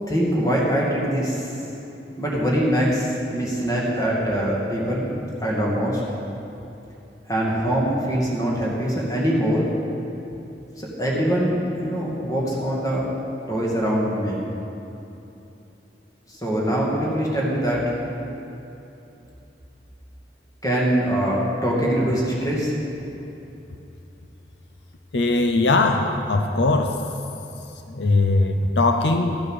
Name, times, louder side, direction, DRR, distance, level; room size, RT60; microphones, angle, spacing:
voice 1, 0.1-1.5 2.2-5.1 5.4-6.0 7.3-9.7 10.8-13.1 13.5-14.4 16.4-17.9 20.6-22.7, equal, 20° left, -4 dB, 2.3 m, -23 dB
voice 2, 25.1-27.0 27.9-29.4, left 2 dB, 80° left, 5 dB, 0.7 m, -20 dB
14.0 x 7.5 x 6.5 m, 2.9 s
head